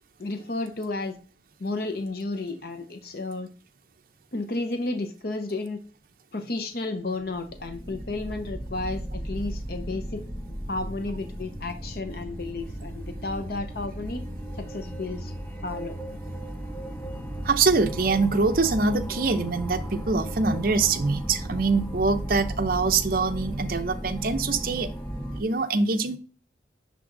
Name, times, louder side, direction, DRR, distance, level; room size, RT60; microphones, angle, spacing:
voice 1, 0.2-1.1 1.6-3.5 4.3-5.8 6.3-10.2 10.7-14.2 14.6-15.3 15.6-16.0, left 2 dB, 55° left, 7 dB, 0.8 m, -32 dB
sound 1, 7.1-25.4, equal, 10° left, 0.8 m, -35 dB
voice 2, 17.4-24.9 25.3-26.2, right 4 dB, 50° right, 7 dB, 0.7 m, -24 dB
10.0 x 3.5 x 3.8 m, 0.36 s
head